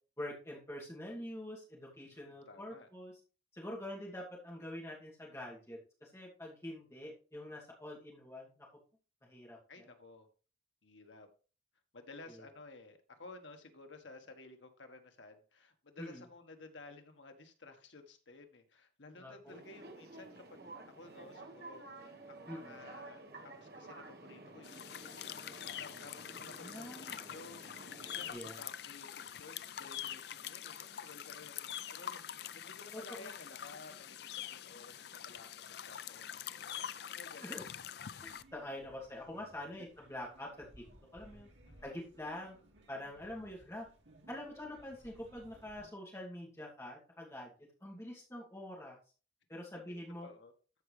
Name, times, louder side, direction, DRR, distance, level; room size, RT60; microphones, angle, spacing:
voice 1, 0.2-3.1 3.5-8.7 9.2-9.9 12.3-12.4 16.0-16.2 19.1-19.6 22.5-22.8 26.6-27.2 28.3-28.6 32.9-33.3 37.4-37.7 38.2-40.8 41.1-41.5 41.8-42.6 42.9-43.9 44.3-47.5 47.8-49.0 49.5-50.3, left 1 dB, 15° left, -3 dB, 2.4 m, -45 dB
voice 2, 2.1-2.9 9.7-10.3 10.8-11.3 11.9-21.8 22.3-32.2 32.5-34.2 34.5-37.6 39.7-39.9 41.7-41.9 49.5-50.0 50.2-50.5, left 3 dB, 85° left, 6 dB, 1.4 m, -55 dB
sound 1, 19.5-28.3, right 2 dB, 55° right, 1.3 m, -52 dB
sound 2, 24.6-38.4, left 10 dB, 60° left, 0.4 m, -45 dB
sound 3, 38.2-45.9, right 1 dB, 80° right, 2.1 m, -61 dB
13.5 x 5.0 x 3.3 m, 0.36 s
head